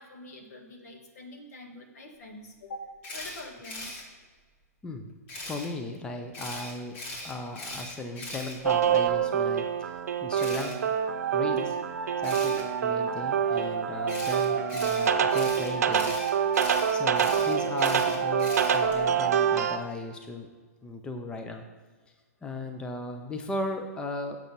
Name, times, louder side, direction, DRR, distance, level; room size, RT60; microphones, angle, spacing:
voice 1, 0.0-2.9 3.1-4.1 11.4-11.8 12.3-12.6, left 1 dB, 70° left, 3 dB, 1.8 m, -45 dB
Camera, 3.0-4.0 5.3-5.7 6.3-9.1 10.4-10.7 12.2-12.6 14.1-19.0, left 1 dB, 50° left, 2.8 m, -40 dB
voice 2, 5.4-7.0 7.2-10.8 11.3-11.8 12.2-16.3 16.9-20.5 20.8-21.6 22.4-24.4, left 2 dB, 10° left, 5 dB, 0.6 m, -36 dB
sound 1, 8.6-19.8, right 7 dB, 75° right, 0.7 m, -26 dB
7.3 x 5.6 x 5.3 m, 1.5 s
hypercardioid pair, 145°, 9 cm